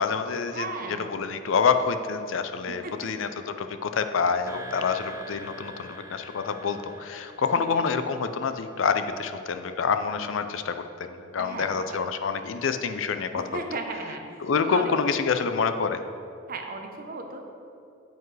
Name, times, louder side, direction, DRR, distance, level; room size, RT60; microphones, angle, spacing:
voice 1, 0.0-0.7 1.1-13.6 14.4-16.0, left 5 dB, 65° left, 9 dB, 0.4 m, -27 dB
voice 2, 0.5-1.2 2.7-3.2 7.5-7.8 11.4-12.0 13.3-14.2 14.6-15.0 16.5-17.4, right 3 dB, 45° right, 4 dB, 0.8 m, -36 dB
sound 1, 4.5-9.4, equal, 15° right, 0.7 m, -45 dB
9.1 x 8.0 x 3.3 m, 2.6 s
head